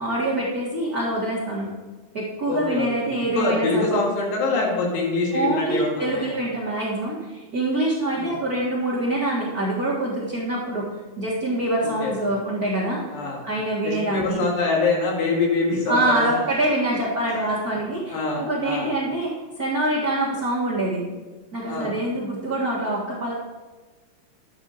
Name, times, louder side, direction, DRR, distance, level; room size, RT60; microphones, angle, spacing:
voice 1, 0.0-1.7 2.1-4.0 5.3-10.9 11.2-13.0 13.4-14.4 15.9-21.1 21.5-23.3, right 1 dB, 75° right, -6 dB, 0.8 m, -25 dB
voice 2, 2.5-6.3 8.2-8.4 11.8-12.1 13.1-13.4 13.8-16.5 18.1-18.9 21.7-21.9, left 3 dB, 90° left, -1 dB, 4.2 m, -25 dB
11.5 x 9.0 x 4.0 m, 1.3 s
omnidirectional pair, 4.7 m